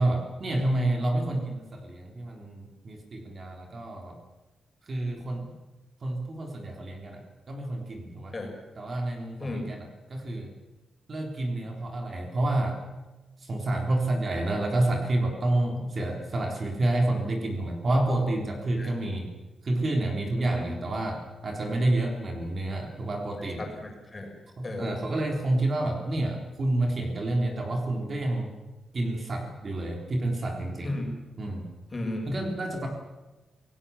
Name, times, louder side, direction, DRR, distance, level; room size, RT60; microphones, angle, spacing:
voice 1, 0.0-4.2 4.9-5.5 6.0-8.4 8.8-10.5 11.1-12.8 13.4-19.3 19.6-23.7 24.6-28.5 28.9-30.9 31.4-31.7 32.3-32.9, right 1 dB, 35° right, 2 dB, 3.8 m, -29 dB
voice 2, 20.3-20.7 23.4-24.3 24.6-25.1 30.8-31.1 31.9-32.5, left 2 dB, 20° left, 2 dB, 5.9 m, -35 dB
27.5 x 18.5 x 7.3 m, 1.2 s
wide cardioid pair, 150°, 0 cm